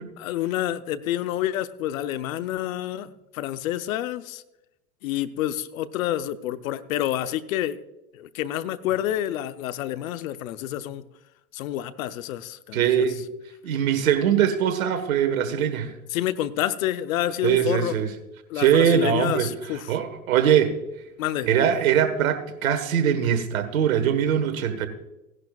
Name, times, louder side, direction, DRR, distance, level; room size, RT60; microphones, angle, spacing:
voice 1, 0.2-4.4 5.0-7.8 8.1-11.0 11.5-13.1 16.1-18.0 18.5-19.9 21.2-21.5, left 12 dB, 80° left, 0.8 m, -28 dB
voice 2, 12.7-13.2 13.6-15.9 17.4-18.1 18.5-19.5 19.9-20.8 21.4-24.9, right 8 dB, 90° right, 1.5 m, -22 dB
17.0 x 11.0 x 2.4 m
hypercardioid pair, 90°, 40 cm